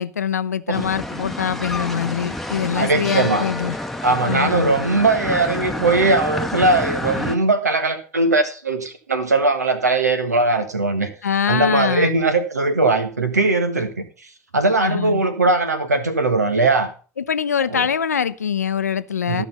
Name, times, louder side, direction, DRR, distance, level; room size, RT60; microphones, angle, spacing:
voice 1, 0.0-3.8 4.2-4.7 11.2-12.2 14.8-15.2 17.2-19.4, left 7 dB, 80° left, 0.6 m, -23 dB
sound 1, 0.7-7.4, left 1 dB, 5° left, 1.0 m, -28 dB
voice 2, 2.7-3.4 4.0-11.1 11.5-14.0 14.5-16.9 17.7-17.9 19.3-19.5, right 3 dB, 80° right, 1.4 m, -19 dB
14.0 x 6.2 x 5.5 m
figure-of-eight pair, 75°, 9 cm